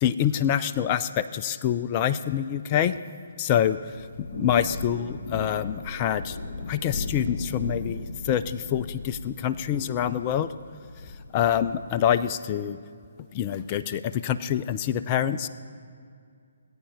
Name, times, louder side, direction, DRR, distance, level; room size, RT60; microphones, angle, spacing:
voice 1, 0.0-2.9 3.4-3.8 4.2-6.4 6.7-10.5 11.3-12.8 13.3-15.5, left 10 dB, 25° left, 11 dB, 0.4 m, -26 dB
Thunder / Rain, 3.9-12.3, left 3 dB, 45° left, 1.2 m, -37 dB
18.5 x 8.8 x 5.3 m, 2.2 s
figure-of-eight pair, 135°, 0 cm